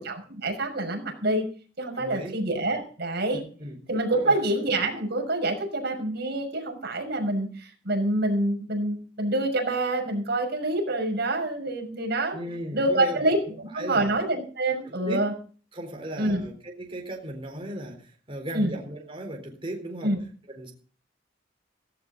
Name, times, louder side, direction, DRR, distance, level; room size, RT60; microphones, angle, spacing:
voice 1, 0.0-1.5 1.8-3.4 3.9-12.4 12.7-13.4 13.7-15.3 16.2-16.4 18.5-18.7 20.0-20.2, right 1 dB, 60° right, 3 dB, 6.2 m, -26 dB
voice 2, 1.9-2.4 3.6-3.8 4.2-4.4 12.3-13.3 13.7-14.1 14.8-15.2 15.7-20.1 20.5-20.7, right 1 dB, 30° right, 2 dB, 4.0 m, -36 dB
17.5 x 16.0 x 3.9 m, 0.40 s
head